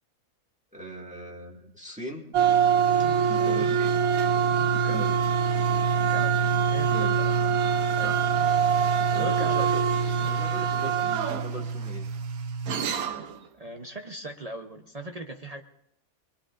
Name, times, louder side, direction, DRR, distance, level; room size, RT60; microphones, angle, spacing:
voice 1, 0.7-2.3 3.3-4.1 4.8-5.2 6.9-7.2 8.0-8.3 9.1-9.8 10.2-12.1, right 1 dB, 5° right, -2 dB, 1.9 m, -39 dB
sound 1, 2.3-13.3, right 7 dB, 80° right, 1.2 m, -24 dB
voice 2, 3.3-3.7 6.1-6.4 6.7-7.5 7.9-8.2 9.2-9.7 10.2-10.3 10.8-10.9 13.6-15.6, right 2 dB, 35° right, 4 dB, 0.6 m, -39 dB
23.0 x 21.5 x 2.5 m, 0.85 s
omnidirectional pair, 1.5 m